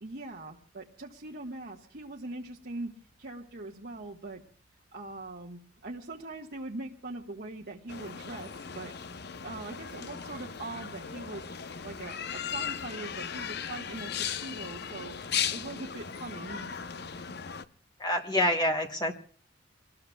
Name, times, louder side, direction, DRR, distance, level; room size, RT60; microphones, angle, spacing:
voice 1, 0.0-2.9 3.2-4.4 4.9-8.9 9.4-11.5 11.8-15.2 15.5-16.7, right 2 dB, 60° right, -2 dB, 1.4 m, -41 dB
sound 1, 7.9-17.6, left 7 dB, 55° left, 0.7 m, -37 dB
voice 2, 18.0-19.1, left 1 dB, 20° left, 3 dB, 1.1 m, -27 dB
26.5 x 20.0 x 2.3 m, 0.42 s
head